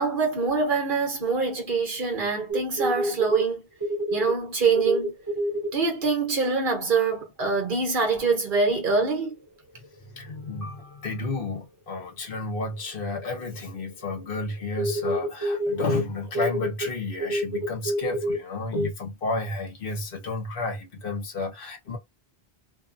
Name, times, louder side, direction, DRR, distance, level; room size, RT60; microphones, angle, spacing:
voice 1, 0.0-3.7 4.1-5.1 5.7-9.3, right 4 dB, 55° right, 1.1 m, -24 dB
sound 1, 2.5-3.4 3.8-4.3 4.7-5.7 7.5-7.6 9.8-9.9 12.8-12.9 13.2-13.8 14.1-14.3 14.8-16.0 16.3-18.4 18.7-18.9, equal, 25° right, 0.6 m, -27 dB
voice 2, 10.0-22.0, left 3 dB, 60° left, 1.0 m, -31 dB
2.7 x 2.4 x 2.5 m
omnidirectional pair, 1.1 m